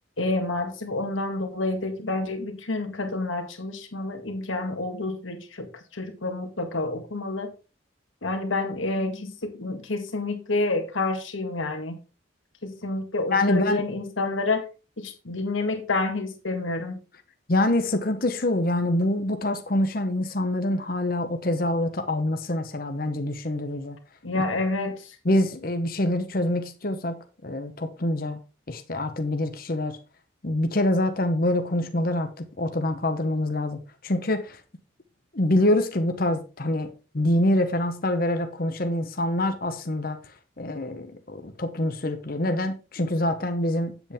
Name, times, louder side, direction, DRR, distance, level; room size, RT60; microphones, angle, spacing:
voice 1, 0.2-7.5 8.2-12.0 12.6-14.6 15.0-17.0 24.2-25.2, left 2 dB, 80° left, 1.8 m, -29 dB
voice 2, 13.3-13.8 17.5-24.0 25.2-28.4 28.7-30.0 30.4-33.8 34.0-34.6 35.3-36.9 37.1-40.2 40.6-44.1, left 1 dB, 45° left, 1.0 m, -25 dB
8.8 x 8.1 x 3.6 m
head